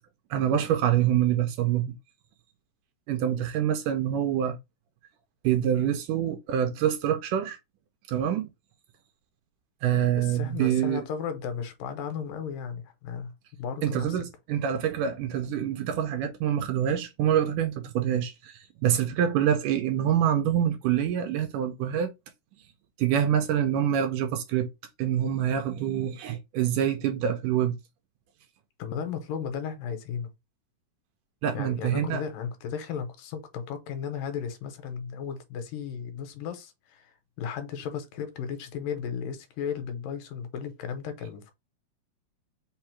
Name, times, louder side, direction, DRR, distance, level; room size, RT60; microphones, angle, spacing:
voice 1, 0.3-2.0 3.1-4.6 5.4-7.6 8.1-8.5 9.8-11.0 13.8-22.1 23.0-24.7 25.0-27.7 31.4-32.2, right 10 dB, 80° right, 1.9 m, -26 dB
voice 2, 10.1-14.3 28.8-30.3 31.5-41.5, left 7 dB, 80° left, 2.4 m, -35 dB
5.5 x 2.0 x 4.3 m
omnidirectional pair, 4.0 m